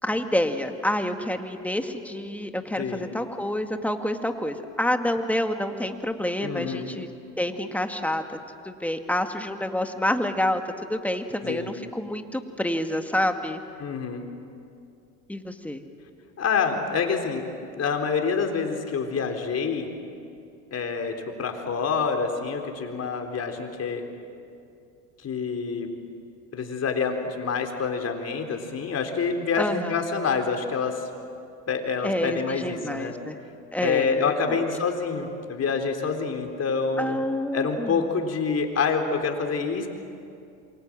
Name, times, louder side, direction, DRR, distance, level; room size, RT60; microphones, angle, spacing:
voice 1, 0.0-7.1 7.4-8.2 8.6-13.6 15.3-15.8 29.6-30.0 32.0-33.4 33.7-34.2 34.5-34.6 37.0-38.0, left 1 dB, 5° left, 5 dB, 2.1 m, -28 dB
voice 2, 2.8-3.1 6.4-6.9 11.4-11.7 13.8-14.2 16.4-17.4 17.8-19.9 20.7-24.0 25.2-25.9 26.5-31.0 31.7-33.1 33.8-37.2 37.5-39.9, left 5 dB, 35° left, 3 dB, 4.1 m, -27 dB
27.5 x 24.5 x 7.6 m, 2.5 s
hypercardioid pair, 85°, 41 cm